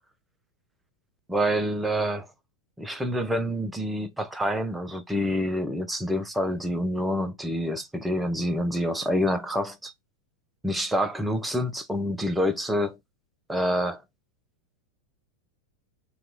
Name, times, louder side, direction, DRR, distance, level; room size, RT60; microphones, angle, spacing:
voice 1, 1.3-2.3 2.8-9.9 10.6-13.0 13.5-14.0, equal, 5° right, 0.5 m, -27 dB
2.8 x 2.3 x 3.7 m
figure-of-eight pair, 90°, 0 cm